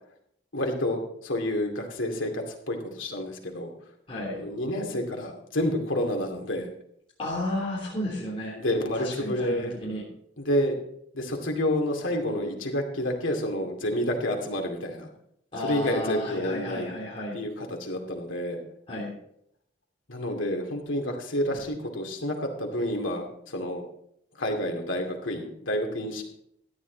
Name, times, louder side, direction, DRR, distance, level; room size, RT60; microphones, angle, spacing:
voice 1, 0.5-3.7 4.3-6.7 8.6-9.8 10.4-10.8 11.1-15.1 15.6-17.0 17.3-18.6 20.1-23.8 24.4-26.2, left 1 dB, 85° left, 2 dB, 2.5 m, -29 dB
voice 2, 4.1-4.4 7.2-8.5 8.9-10.0 15.5-17.4 18.9-19.1 21.5-21.6, left 1 dB, 30° left, -6 dB, 3.3 m, -32 dB
13.5 x 10.5 x 4.0 m, 0.71 s
head